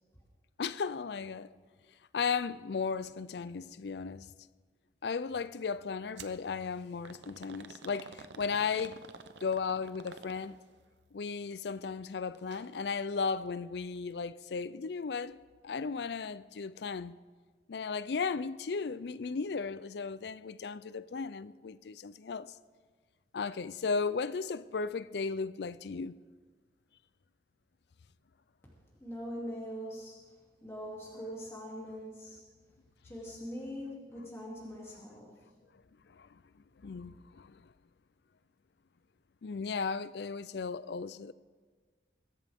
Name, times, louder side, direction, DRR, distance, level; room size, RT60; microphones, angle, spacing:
voice 1, 0.6-1.5 2.1-4.3 5.0-9.0 9.4-10.6 11.1-15.4 15.6-17.2 17.7-22.6 23.3-26.2 36.1-36.4 36.8-37.7 39.4-41.3, left 5 dB, 70° left, 0.4 m, -35 dB
sound 1, 6.2-6.4 7.0-10.7 12.3-12.7 13.0-13.1 14.0-14.1, right 5 dB, 85° right, 0.8 m, -50 dB
voice 2, 29.0-30.3 30.6-32.4 33.0-35.4, equal, 15° left, 2.7 m, -42 dB
22.5 x 13.0 x 3.6 m
head